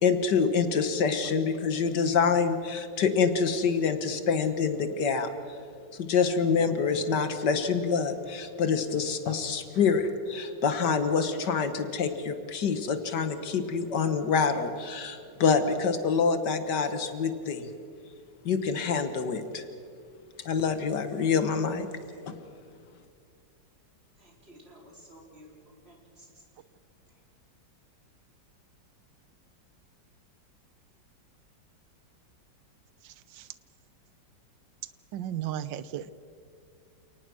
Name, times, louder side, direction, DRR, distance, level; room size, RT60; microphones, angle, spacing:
voice 1, 0.0-5.3 5.9-17.7 18.5-19.6 20.5-21.9 22.3-22.4, left 5 dB, 70° left, 10 dB, 1.9 m, -26 dB
voice 2, 24.2-25.5 25.8-26.4 27.1-27.2, equal, 35° right, -1 dB, 4.7 m, -53 dB
voice 3, 33.0-33.5 35.1-36.1, right 11 dB, 90° right, 15 dB, 1.5 m, -35 dB
29.0 x 19.0 x 6.3 m, 2.3 s
omnidirectional pair, 1.9 m